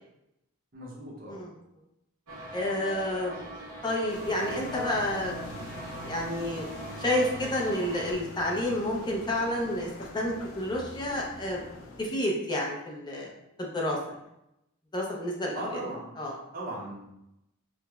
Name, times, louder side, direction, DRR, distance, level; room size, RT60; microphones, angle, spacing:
voice 1, 0.7-1.4 15.5-16.1 16.5-17.1, right 1 dB, 45° right, -4 dB, 0.7 m, -37 dB
sound 1, 2.3-8.1, right 1 dB, 90° right, 0.7 m, -42 dB
voice 2, 2.5-3.4 3.8-5.6 6.0-6.7 7.0-11.6 12.0-13.3 13.6-14.0 14.9-15.8 16.2-16.4, left 1 dB, 20° left, -2 dB, 0.6 m, -30 dB
sound 2, 4.1-12.1, left 1 dB, 75° left, 0.5 m, -43 dB
4.6 x 2.1 x 2.3 m, 0.85 s
head